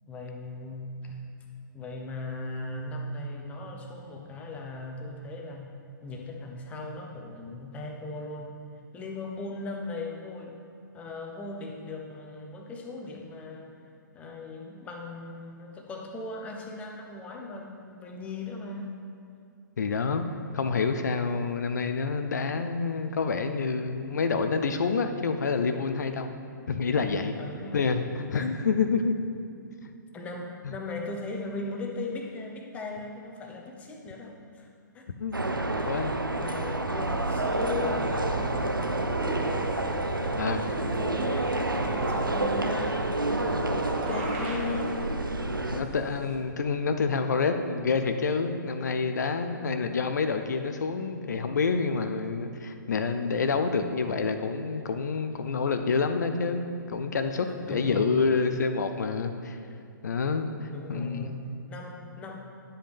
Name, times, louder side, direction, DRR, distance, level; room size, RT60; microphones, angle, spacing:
voice 1, 0.1-1.2 1.7-5.7 6.0-8.5 8.9-10.6 10.9-13.7 14.1-18.9 27.4-27.9 28.3-28.5 30.1-35.1 35.5-36.0 36.3-38.6 39.0-39.3 40.1-45.0 49.5-49.9 57.5-58.4 60.7-62.4, left 2 dB, 10° left, 2 dB, 0.8 m, -38 dB
voice 2, 19.8-20.2 20.5-26.3 26.7-27.3 27.7-29.1 35.2-35.4 35.9-36.2 40.4-40.6 45.7-59.6 60.0-60.5 60.9-61.3, left 4 dB, 55° left, 8 dB, 0.6 m, -28 dB
sound 1, 35.3-45.8, right 2 dB, 90° right, 0.7 m, -29 dB
sound 2, 37.5-46.3, right 2 dB, 30° right, 1.4 m, -37 dB
11.5 x 7.7 x 3.5 m, 2.5 s
figure-of-eight pair, 125°, 11 cm